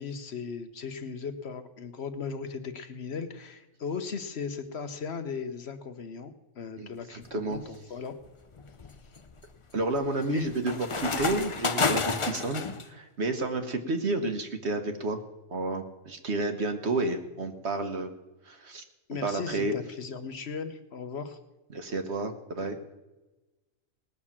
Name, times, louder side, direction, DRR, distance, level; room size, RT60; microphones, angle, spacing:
voice 1, 0.0-8.2 9.0-9.1 10.3-10.5 19.1-21.4, left 5 dB, 55° left, 8 dB, 1.1 m, -37 dB
sound 1, 7.3-7.6 8.2-12.8, left 4 dB, 30° left, 0.6 m, -31 dB
voice 2, 9.7-15.2 15.5-18.1 18.5-18.8 19.2-19.7 21.7-22.8, right 2 dB, 55° right, 7 dB, 1.4 m, -30 dB
19.0 x 6.5 x 7.3 m, 1.1 s
omnidirectional pair, 1.4 m